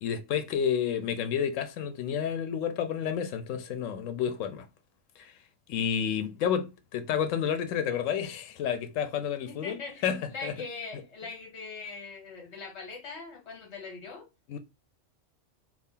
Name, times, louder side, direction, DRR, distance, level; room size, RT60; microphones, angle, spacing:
voice 1, 0.0-4.7 5.2-5.3 5.7-10.5 14.5-14.6, left 8 dB, 85° left, 1.0 m, -30 dB
voice 2, 9.5-14.2, left 4 dB, 60° left, 1.5 m, -41 dB
3.4 x 2.4 x 3.6 m
omnidirectional pair, 1.3 m